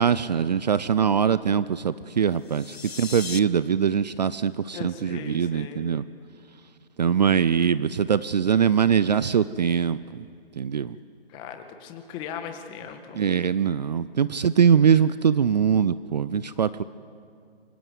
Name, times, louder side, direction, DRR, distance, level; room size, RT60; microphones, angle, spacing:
voice 1, 0.0-6.0 7.0-10.3 10.6-11.0 13.1-16.8, right 7 dB, 45° right, 16 dB, 0.6 m, -22 dB
sound 1, 2.3-3.4, left 6 dB, 75° left, 1.1 m, -37 dB
voice 2, 4.7-5.9 11.3-13.2, left 8 dB, 15° left, 6 dB, 1.8 m, -38 dB
27.5 x 25.5 x 8.1 m, 2.3 s
hypercardioid pair, 150°, 31 cm